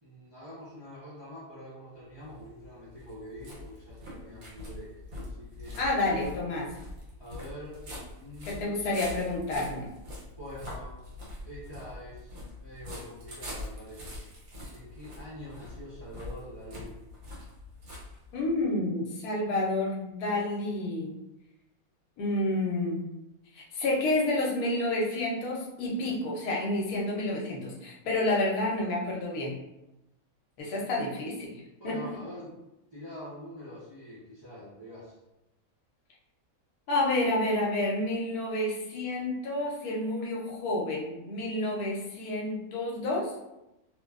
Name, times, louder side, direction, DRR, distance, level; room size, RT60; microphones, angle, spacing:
voice 1, 0.0-4.9 5.3-5.8 7.2-7.8 8.2-8.8 10.4-11.0 11.4-14.2 14.7-16.9 31.8-32.6 32.9-35.2, equal, 35° right, -9 dB, 0.4 m, -45 dB
sound 1, 2.1-18.6, left 1 dB, 75° right, 1.4 m, -44 dB
voice 2, 5.8-6.7 8.4-9.9 18.3-21.1 22.2-23.1 23.5-29.5 30.6-32.0 36.9-43.3, left 2 dB, 85° left, -2 dB, 1.2 m, -29 dB
3.0 x 2.2 x 2.3 m, 0.92 s
omnidirectional pair, 1.5 m